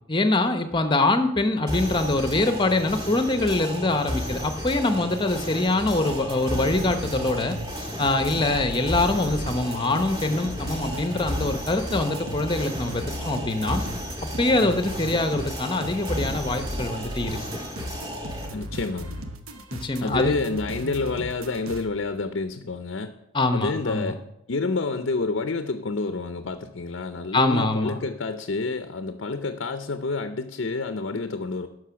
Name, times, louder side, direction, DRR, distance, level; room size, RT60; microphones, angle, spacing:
voice 1, 0.1-7.6 8.0-13.8 14.4-17.4 19.7-20.3 23.3-24.1 27.3-28.0, left 2 dB, 20° left, 8 dB, 0.8 m, -24 dB
sound 1, 1.7-18.5, equal, 20° right, 1.6 m, -33 dB
sound 2, 6.1-21.9, right 1 dB, 90° right, 1.0 m, -37 dB
voice 2, 18.5-19.2 20.0-23.1 23.5-24.2 24.5-31.7, left 3 dB, 60° left, 9 dB, 0.6 m, -28 dB
11.0 x 6.3 x 5.8 m, 0.84 s
head